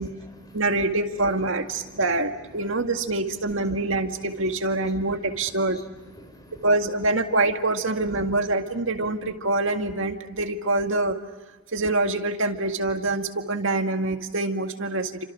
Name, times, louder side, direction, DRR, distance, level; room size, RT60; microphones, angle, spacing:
voice 1, 0.0-1.0 1.5-6.7, equal, 20° left, 6 dB, 4.4 m, -49 dB
voice 2, 0.5-5.8 6.6-11.2 11.7-15.2, right 2 dB, 65° right, 5 dB, 2.0 m, -25 dB
30.0 x 26.5 x 6.3 m, 1.2 s
head